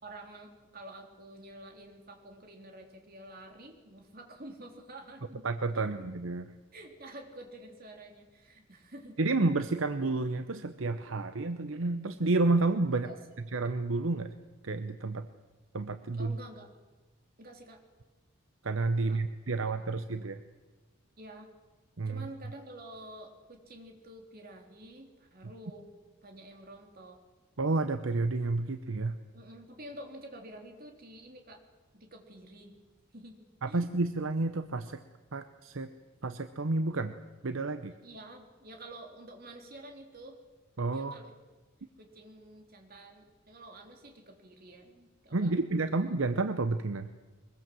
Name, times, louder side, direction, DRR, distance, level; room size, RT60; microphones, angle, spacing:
voice 1, 0.0-5.5 5.7-6.1 6.7-9.2 13.0-13.2 16.2-16.7 17.4-17.8 19.0-19.2 19.8-20.1 21.2-21.5 22.0-25.9 26.2-27.2 28.6-28.7 29.3-31.6 31.9-32.8 33.1-33.4 33.7-33.8 38.0-40.4 40.9-41.3 42.0-45.6, right 1 dB, 45° right, 3 dB, 3.4 m, -49 dB
voice 2, 5.4-6.5 9.2-13.1 13.5-14.4 14.6-15.3 15.7-16.4 18.6-20.4 22.0-22.3 27.6-29.2 33.6-35.0 35.3-35.9 36.2-37.1 37.4-37.9 40.8-41.2 45.3-47.1, right 3 dB, 70° right, 10 dB, 0.8 m, -30 dB
22.5 x 21.5 x 7.7 m, 1.2 s
head